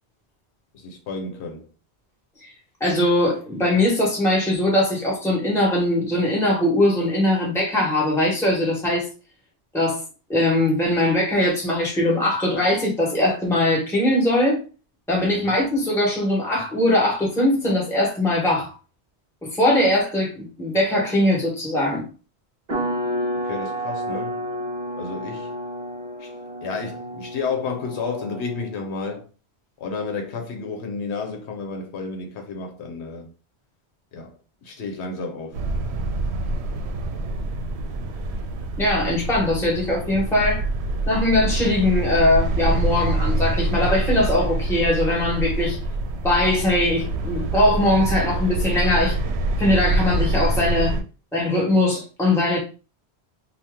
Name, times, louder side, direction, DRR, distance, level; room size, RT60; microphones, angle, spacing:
voice 1, 0.7-1.7 15.4-15.6 23.4-24.4 25.0-25.5 26.2-26.3 26.6-29.3 29.8-33.3 34.1-35.6, left 4 dB, 85° left, 0.9 m, -31 dB
voice 2, 2.8-9.1 9.7-10.0 10.3-14.6 15.1-18.7 19.4-22.0 38.8-40.7 41.1-45.8 46.2-49.2 49.6-50.9 51.3-52.6, left 1 dB, 5° left, 1.1 m, -21 dB
sound 1, 22.7-28.9, equal, 45° right, 0.9 m, -30 dB
sound 2, 35.5-51.0, right 2 dB, 75° right, 0.8 m, -25 dB
2.8 x 2.4 x 3.4 m
omnidirectional pair, 1.1 m